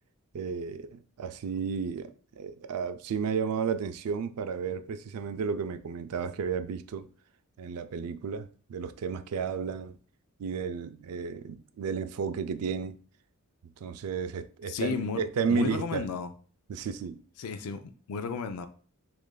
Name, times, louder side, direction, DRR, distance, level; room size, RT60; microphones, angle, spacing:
voice 1, 0.3-7.1 7.6-10.0 10.4-13.0 13.8-16.0 16.7-17.2, right 6 dB, 85° right, 0.4 m, -33 dB
voice 2, 14.7-15.2 15.5-16.3 17.4-18.7, left 5 dB, 90° left, 0.4 m, -33 dB
6.2 x 2.5 x 2.2 m
head